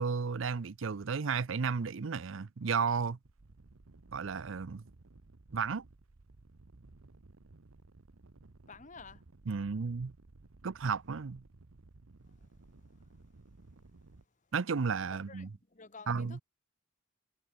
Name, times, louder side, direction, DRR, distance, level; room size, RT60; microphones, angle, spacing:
voice 1, 0.0-3.2 4.1-4.8 5.5-5.9 9.5-10.1 10.6-11.4 14.5-15.5 16.1-16.4, right 5 dB, 65° right, 0.6 m, -33 dB
sound 1, 3.2-14.3, right 2 dB, 90° right, 1.0 m, -58 dB
voice 2, 8.7-9.2 12.3-12.6 12.9-13.1 15.1-16.4, left 4 dB, 35° left, 1.4 m, -52 dB
head